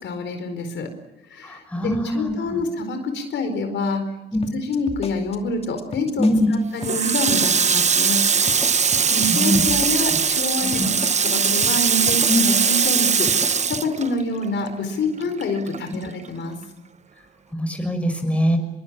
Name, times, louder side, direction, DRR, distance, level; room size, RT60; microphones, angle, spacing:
voice 1, 0.0-0.9 1.3-4.0 4.5-8.2 8.6-8.8 9.1-16.6, left 2 dB, 65° left, 6 dB, 4.6 m, -27 dB
voice 2, 1.4-2.6 4.3-4.4 6.2-6.5 9.3-9.6 10.8-10.9 12.3-12.6 17.5-18.6, left 1 dB, 5° left, 5 dB, 6.1 m, -22 dB
sound 1, 4.4-6.6 6.8-7.0 7.3-7.8 8.0-8.2 8.5-11.4 11.6-11.8 12.1-12.6 12.8-13.0 13.3-13.9, left 4 dB, 30° left, 2.6 m, -35 dB
Water tap faucet, 6.8-14.7 15.0-16.3, right 6 dB, 35° right, 0.9 m, -20 dB
24.5 x 22.5 x 8.9 m, 0.95 s
cardioid pair, 90°, 20 cm